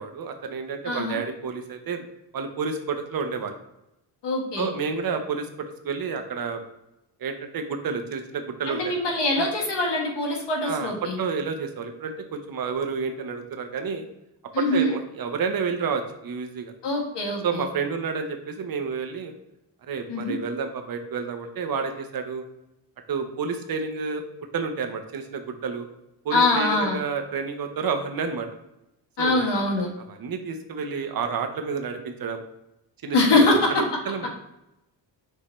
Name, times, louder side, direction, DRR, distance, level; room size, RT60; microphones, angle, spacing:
voice 1, 0.0-2.1 2.3-3.6 4.6-5.5 5.8-6.6 7.2-8.9 9.3-9.5 10.6-10.9 11.2-14.0 14.6-16.7 17.4-19.3 19.9-22.4 23.1-24.2 24.5-25.9 26.2-28.5 29.2-29.5 30.1-32.4 33.0-34.4, right 5 dB, 50° right, 6 dB, 0.8 m, -30 dB
voice 2, 0.9-1.2 4.2-4.7 8.7-11.2 14.5-15.0 16.8-17.6 20.1-20.4 26.3-27.0 29.2-29.9 33.1-33.7, left 2 dB, 65° left, -1 dB, 1.6 m, -23 dB
6.4 x 2.7 x 3.1 m, 0.89 s
cardioid pair, 100°, 44 cm